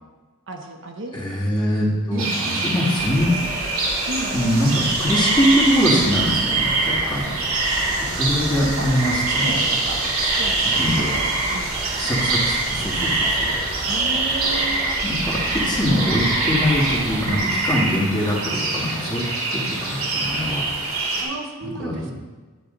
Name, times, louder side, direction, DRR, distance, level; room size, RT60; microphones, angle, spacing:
voice 1, 0.5-1.1 2.1-2.7 4.1-4.5 8.5-8.9 9.3-10.8 11.1-11.2 11.5-11.8 13.8-14.9 21.2-22.1, right 1 dB, 60° right, 2 dB, 1.0 m, -33 dB
voice 2, 1.1-3.4 4.3-7.3 8.2-9.5 10.6-11.1 12.0-13.5 15.0-19.2 19.5-20.6 21.8-21.9, equal, 20° left, -4 dB, 1.8 m, -23 dB
sound 1, 2.2-21.2, right 2 dB, 90° right, 2.8 m, -24 dB
sound 2, 3.0-17.2, right 1 dB, 15° right, 0.9 m, -36 dB
11.0 x 6.8 x 3.9 m, 1.3 s
head